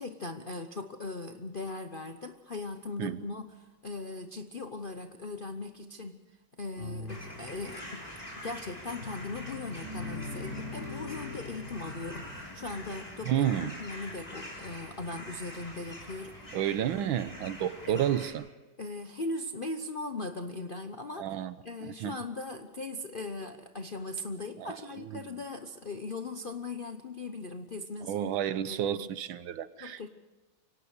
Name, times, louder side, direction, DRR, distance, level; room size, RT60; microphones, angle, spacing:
voice 1, 0.0-6.2 6.6-8.1 8.4-16.4 17.9-18.1 18.8-21.3 21.6-28.3 28.6-29.1 29.8-30.1, left 2 dB, 50° left, 0.6 m, -39 dB
sound 1, 6.8-7.3 8.9-12.8, left 3 dB, 30° right, 5.2 m, -42 dB
sound 2, 7.1-18.3, left 1 dB, 20° left, 4.0 m, -45 dB
voice 2, 13.2-13.7 16.5-18.5 21.2-21.5 21.8-22.2 24.6-25.4 28.0-30.1, right 10 dB, 80° right, 1.6 m, -31 dB
24.5 x 18.0 x 6.6 m
omnidirectional pair, 2.2 m